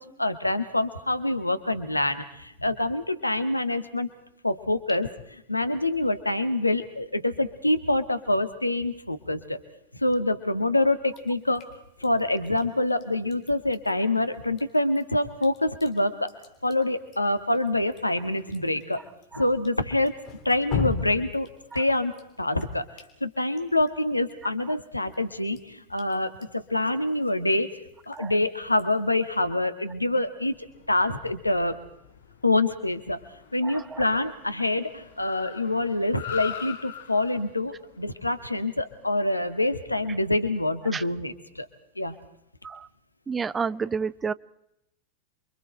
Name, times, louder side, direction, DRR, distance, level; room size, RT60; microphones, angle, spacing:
voice 1, 0.0-4.1 4.4-9.6 10.0-11.6 12.0-16.3 16.6-19.0 19.4-20.2 20.4-21.5 21.7-22.9 23.2-27.7 28.1-30.6 30.9-31.8 32.4-33.2 33.5-41.7 42.0-42.2, left 2 dB, 85° left, 11 dB, 1.7 m, -26 dB
Drip, 11.1-29.4, left 7 dB, 40° left, 3.6 m, -41 dB
Car, 30.4-39.9, left 8 dB, 60° left, 2.6 m, -43 dB
voice 2, 33.6-34.0 40.9-41.0 42.6-42.9 43.3-44.3, right 5 dB, 15° right, 18 dB, 0.7 m, -30 dB
28.5 x 24.5 x 4.5 m, 0.79 s
figure-of-eight pair, 90°, 0 cm